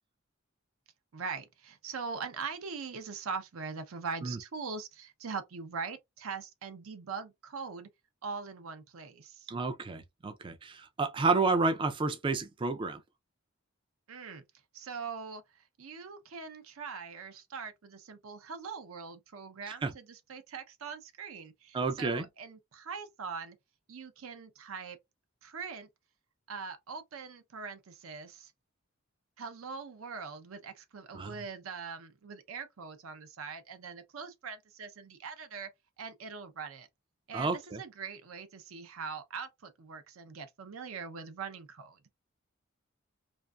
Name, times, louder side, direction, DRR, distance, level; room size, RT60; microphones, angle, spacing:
voice 1, 1.1-7.9 8.2-9.5 14.1-14.4 14.7-23.6 23.9-25.0 25.4-25.9 26.5-28.5 29.4-35.7 36.0-36.9 37.3-42.0, right 5 dB, 75° right, 0.6 m, -42 dB
voice 2, 9.5-13.0 19.7-19.9 21.7-22.3 31.1-31.4 37.3-37.8, right 3 dB, 25° right, 0.3 m, -30 dB
2.5 x 2.5 x 2.2 m
head